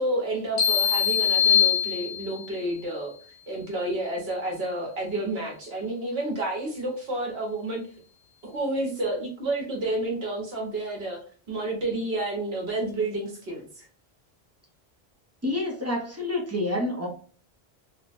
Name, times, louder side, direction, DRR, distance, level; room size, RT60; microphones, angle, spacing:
voice 1, 0.0-3.1 3.5-7.8 8.4-11.2 11.5-13.9, right 2 dB, 75° right, -1 dB, 1.2 m, -30 dB
sound 1, 0.6-2.5, left 8 dB, 80° left, 1.1 m, -22 dB
voice 2, 15.4-17.1, left 1 dB, 20° right, -1 dB, 0.6 m, -28 dB
3.2 x 2.1 x 2.5 m, 0.42 s
omnidirectional pair, 1.0 m